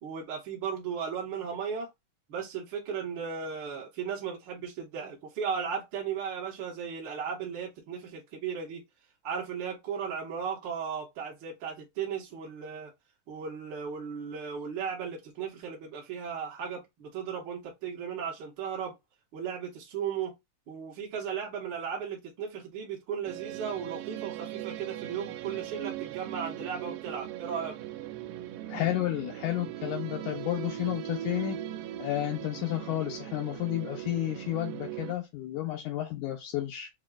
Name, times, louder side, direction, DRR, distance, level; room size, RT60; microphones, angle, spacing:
voice 1, 0.0-1.9 2.3-8.8 9.2-12.9 13.3-18.9 19.3-20.3 20.7-27.7, right 7 dB, 65° right, 1.1 m, -36 dB
sound 1, 23.2-35.1, right 12 dB, 90° right, 2.2 m, -39 dB
voice 2, 28.7-31.6 32.0-36.9, left 14 dB, 80° left, 1.9 m, -31 dB
6.3 x 2.3 x 2.3 m
omnidirectional pair, 3.8 m